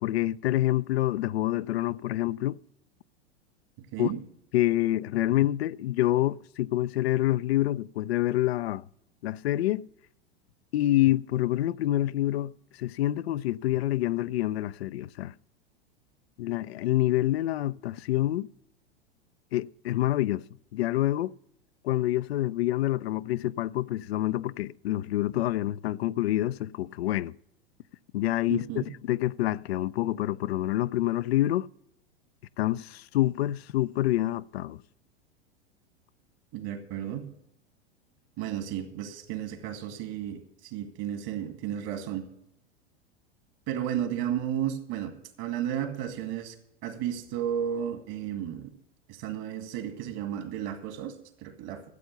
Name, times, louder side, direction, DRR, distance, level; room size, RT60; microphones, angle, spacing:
voice 1, 0.0-2.6 4.0-4.1 4.5-8.8 9.2-9.9 10.7-12.5 12.8-15.3 16.4-18.5 19.5-20.4 20.7-21.3 21.8-27.3 28.1-31.7 32.6-34.8, left 15 dB, 75° left, 0.5 m, -27 dB
voice 2, 3.8-4.2 28.5-28.9 36.5-37.3 38.4-42.3 43.7-45.1 45.4-46.5 46.8-48.7 49.1-51.9, right 10 dB, 55° right, 2.3 m, -33 dB
13.0 x 8.0 x 6.7 m
hypercardioid pair, 100°, 31 cm